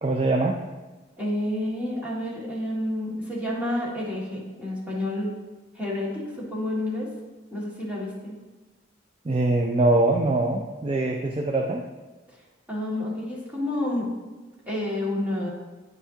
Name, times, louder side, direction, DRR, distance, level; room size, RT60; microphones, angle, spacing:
voice 1, 0.0-0.6 9.2-11.8, right 2 dB, 30° right, 2 dB, 0.4 m, -23 dB
voice 2, 1.2-5.3 5.7-7.1 7.5-8.4 12.7-14.1 14.7-15.5, left 1 dB, 10° right, -7 dB, 1.9 m, -29 dB
9.3 x 5.6 x 2.8 m, 1.3 s
head